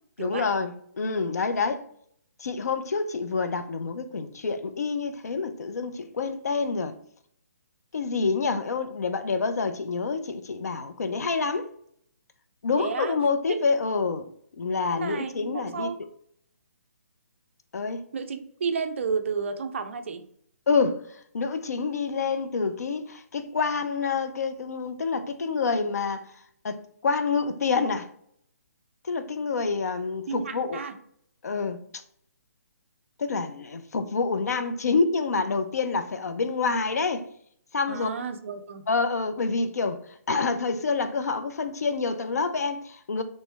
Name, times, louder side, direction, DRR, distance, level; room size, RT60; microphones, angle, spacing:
voice 1, 0.2-1.8 2.4-7.0 7.9-11.7 12.6-14.3 14.6-15.9 17.7-18.0 20.7-21.0 21.3-26.3 26.6-28.1 29.0-30.8 31.4-31.8 33.2-37.3 37.7-38.1 38.9-40.0 40.3-43.2, left 4 dB, 75° left, 0.5 m, -27 dB
voice 2, 12.8-13.2 13.5-13.6 14.9-16.0 18.1-20.3 30.3-31.0 37.9-38.9, right 5 dB, 50° right, 0.4 m, -32 dB
3.1 x 3.1 x 3.3 m
hypercardioid pair, 165°, 9 cm